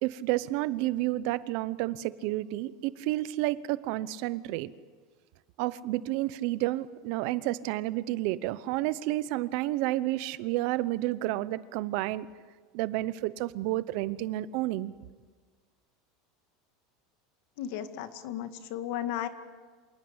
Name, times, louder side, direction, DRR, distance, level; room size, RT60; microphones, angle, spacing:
voice 1, 0.0-4.7 5.6-12.3 12.7-14.9, right 16 dB, 55° right, 17 dB, 0.8 m, -30 dB
voice 2, 17.6-19.3, left 11 dB, 60° left, 9 dB, 2.0 m, -34 dB
27.0 x 19.0 x 8.1 m, 1.5 s
supercardioid pair, 160°, 0 cm